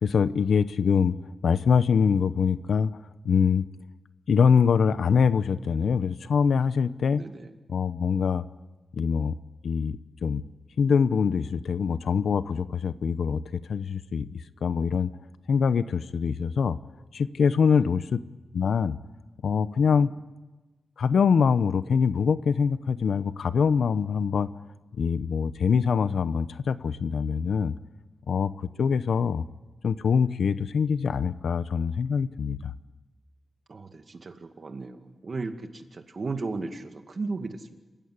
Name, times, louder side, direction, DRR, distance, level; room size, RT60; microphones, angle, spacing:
voice 1, 0.0-1.2 1.4-2.9 3.2-3.6 4.3-7.2 7.7-8.4 8.9-9.3 9.6-10.4 10.8-15.1 15.5-16.8 17.1-18.2 18.5-19.0 19.4-20.1 21.0-24.5 24.9-27.7 28.3-28.5 28.8-29.4 29.8-32.7, left 6 dB, 85° left, 14 dB, 0.8 m, -24 dB
voice 2, 7.1-7.5 17.6-17.8 19.9-20.1 33.7-37.7, right 3 dB, 45° right, 6 dB, 2.1 m, -36 dB
28.0 x 16.0 x 9.8 m, 1.2 s
wide cardioid pair, 115°, 0 cm